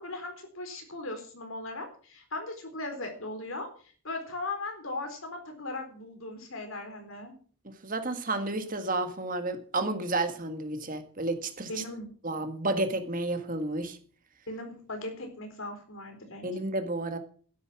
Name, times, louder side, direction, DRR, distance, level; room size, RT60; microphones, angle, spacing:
voice 1, 0.0-3.7 4.0-7.3 11.7-12.1 14.5-16.4, left 2 dB, 65° left, 5 dB, 4.1 m, -38 dB
voice 2, 7.8-11.7 12.2-14.0 16.4-17.2, right 2 dB, 35° right, 7 dB, 1.8 m, -31 dB
12.0 x 11.0 x 6.1 m, 0.43 s
head